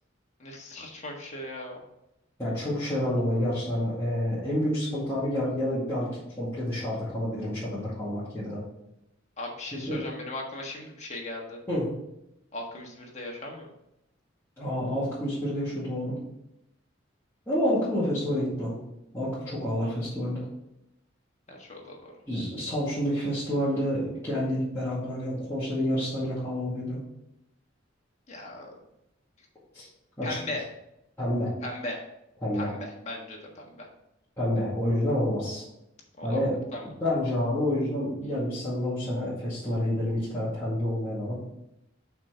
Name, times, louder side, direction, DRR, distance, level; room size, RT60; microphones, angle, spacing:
voice 1, 0.4-1.8 9.4-11.6 12.5-13.7 21.5-22.1 28.3-28.8 30.2-30.6 31.6-32.0 32.5-33.9 36.2-36.4 36.7-36.9, left 2 dB, 40° left, -1 dB, 1.5 m, -38 dB
voice 2, 2.4-6.1 6.4-8.6 9.7-10.0 11.7-11.9 14.6-16.2 17.5-18.8 19.1-20.4 22.3-27.0 29.7-29.9 30.2-30.4 31.2-31.5 32.4-32.7 34.4-35.6 36.2-36.5 37.0-41.4, left 1 dB, 15° left, -12 dB, 2.3 m, -28 dB
5.9 x 4.4 x 5.6 m, 0.84 s
head